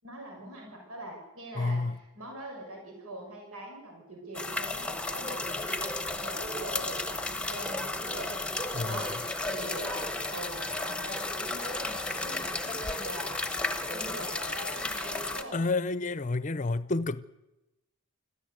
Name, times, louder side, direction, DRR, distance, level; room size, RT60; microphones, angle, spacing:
voice 1, 0.0-1.8 2.1-8.3 8.9-9.1 9.5-13.4 13.9-15.6, right 1 dB, 85° right, 6.2 m, -43 dB
voice 2, 1.5-2.0 8.7-9.2 15.5-17.2, left 3 dB, 35° left, 0.6 m, -30 dB
sound 1, 4.3-15.4, left 2 dB, 5° left, 1.0 m, -33 dB
26.0 x 14.0 x 8.0 m
head